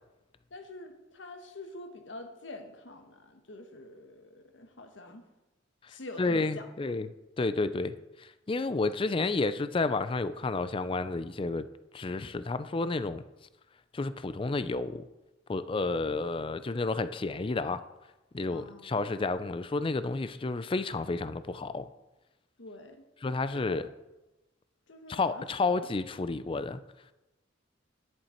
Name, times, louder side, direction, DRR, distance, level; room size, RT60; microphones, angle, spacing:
voice 1, 0.5-5.2 5.9-6.7 18.5-18.9 22.6-23.0 23.5-23.8 24.9-25.7, left 2 dB, 75° left, 5 dB, 1.3 m, -46 dB
voice 2, 6.2-7.1 7.4-11.7 11.9-13.2 13.9-15.0 15.5-17.8 18.3-21.9 23.2-23.9 25.1-26.8, left 3 dB, 25° left, 13 dB, 0.4 m, -31 dB
10.0 x 7.8 x 4.4 m, 1.0 s
head